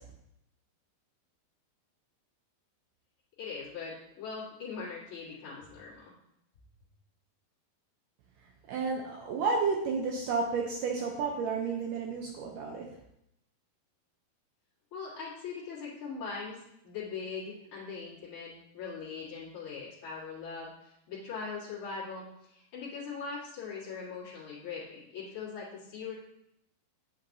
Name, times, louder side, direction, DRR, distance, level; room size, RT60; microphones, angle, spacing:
voice 1, 3.4-6.1 14.9-26.1, left 5 dB, 50° left, -9 dB, 1.7 m, -41 dB
voice 2, 8.7-12.9, right 4 dB, 75° right, 0 dB, 2.0 m, -31 dB
8.1 x 5.7 x 2.7 m, 0.80 s
omnidirectional pair, 4.4 m